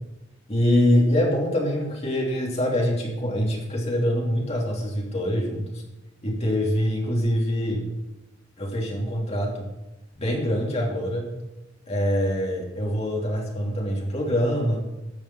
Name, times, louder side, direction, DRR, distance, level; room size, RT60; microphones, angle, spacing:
voice 1, 0.5-5.8 6.2-7.8 8.6-9.7 10.2-11.3 11.9-14.9, equal, 35° left, -1 dB, 2.9 m, -24 dB
12.5 x 7.4 x 6.2 m, 0.98 s
head